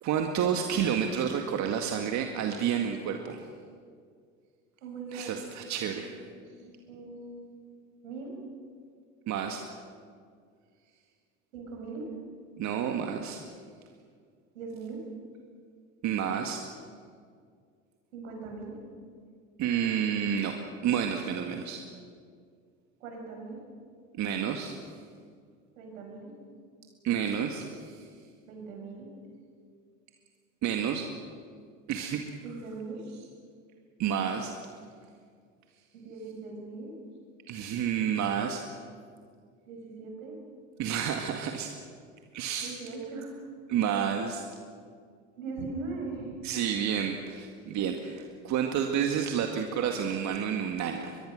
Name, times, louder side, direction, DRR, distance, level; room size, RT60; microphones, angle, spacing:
voice 1, 0.0-3.4 5.1-6.1 9.3-9.6 12.6-13.4 16.0-16.6 19.6-20.5 20.8-21.8 24.2-24.8 27.0-28.1 30.6-31.1 31.9-32.2 34.0-34.5 37.5-38.6 40.8-41.7 42.3-42.7 43.7-44.5 46.4-51.2, right 8 dB, 45° right, 4 dB, 1.9 m, -30 dB
voice 2, 4.8-5.3 5.9-7.6 8.0-8.3 11.5-12.0 14.5-15.0 18.1-18.8 23.0-23.6 25.8-26.3 28.5-29.1 32.4-33.0 35.9-36.9 39.7-40.4 42.6-43.3 45.4-46.4, right 4 dB, 75° right, 1 dB, 6.9 m, -40 dB
23.0 x 22.0 x 6.5 m, 2.1 s
hypercardioid pair, 75°, 40 cm